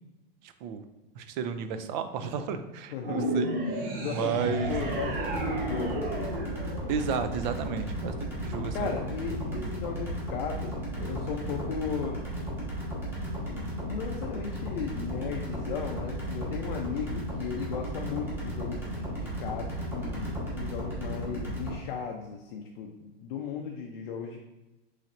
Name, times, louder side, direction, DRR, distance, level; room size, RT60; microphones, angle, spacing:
voice 1, 0.4-0.8 1.2-3.5 4.1-4.7 6.9-9.0 9.5-9.7, right 6 dB, 50° right, 9 dB, 0.4 m, -32 dB
voice 2, 2.9-3.3 4.0-6.3 8.7-12.4 13.4-24.4, left 6 dB, 55° left, 1 dB, 0.5 m, -36 dB
sound 1, 3.0-7.5, right 1 dB, 65° right, 0.8 m, -33 dB
sound 2, 4.6-21.8, equal, 5° right, 1.2 m, -35 dB
4.0 x 3.2 x 2.5 m, 1.1 s
hypercardioid pair, 130°, 31 cm